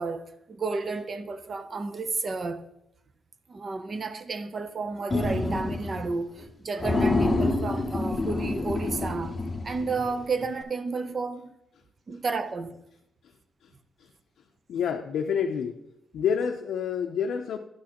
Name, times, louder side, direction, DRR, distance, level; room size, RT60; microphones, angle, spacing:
voice 1, 0.0-2.6 3.5-9.4 9.6-11.5 12.1-12.8, right 4 dB, 35° right, 0.6 m, -32 dB
sound 1, 5.1-6.1 6.4-6.5 6.8-10.2, left 2 dB, 20° left, 0.9 m, -27 dB
voice 2, 14.7-15.8 16.1-17.6, left 7 dB, 75° left, 0.5 m, -28 dB
11.5 x 6.3 x 2.9 m
cardioid pair, 135°, 0 cm